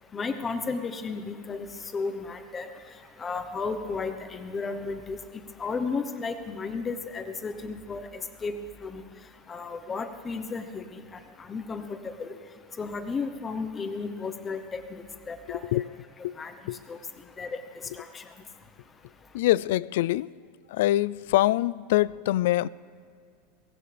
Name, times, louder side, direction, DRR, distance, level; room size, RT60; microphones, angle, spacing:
voice 1, 0.1-1.7 1.9-2.7 3.2-5.2 5.6-8.1 8.4-8.5 8.8-9.0 9.5-11.0 11.5-12.3 12.8-15.6 16.4-16.5 16.9-17.0 17.4-17.6 18.0-18.2, left 4 dB, 15° left, 0.9 m, -33 dB
voice 2, 15.5-15.9 16.2-16.4 16.7-16.8 19.3-20.3 20.7-22.7, left 16 dB, 70° left, 0.3 m, -24 dB
23.0 x 18.0 x 3.4 m
supercardioid pair, 165°, 0 cm